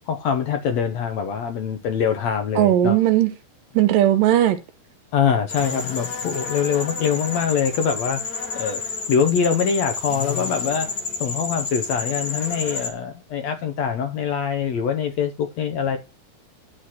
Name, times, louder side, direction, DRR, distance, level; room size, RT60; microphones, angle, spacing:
voice 1, 0.1-3.0 5.1-8.2 8.6-11.0 11.2-16.0, left 7 dB, 65° left, 1.8 m, -24 dB
voice 2, 2.6-3.3 3.7-4.6, right 12 dB, 80° right, 2.4 m, -17 dB
sound 1, 5.5-12.9, left 4 dB, 45° left, 1.4 m, -30 dB
11.5 x 4.0 x 5.9 m
omnidirectional pair, 4.1 m